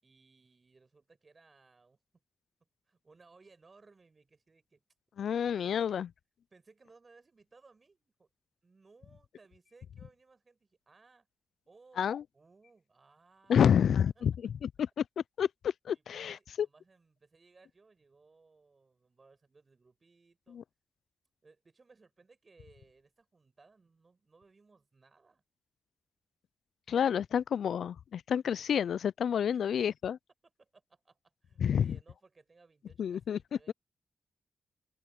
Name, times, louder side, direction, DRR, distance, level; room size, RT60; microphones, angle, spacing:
voice 1, 0.0-2.0 2.8-4.8 5.7-6.1 6.5-8.3 8.6-11.3 11.7-12.1 12.3-14.2 15.9-20.6 21.4-25.4 29.5-29.8 30.4-33.7, right 4 dB, 45° right, 5.3 m, -63 dB
voice 2, 5.2-6.1 12.0-12.2 13.5-14.3 14.6-15.0 15.4-16.7 20.5-20.6 26.9-30.2 31.6-32.0 33.0-33.4 33.7-33.8, left 8 dB, 75° left, 0.3 m, -29 dB
supercardioid pair, 45°, 0 cm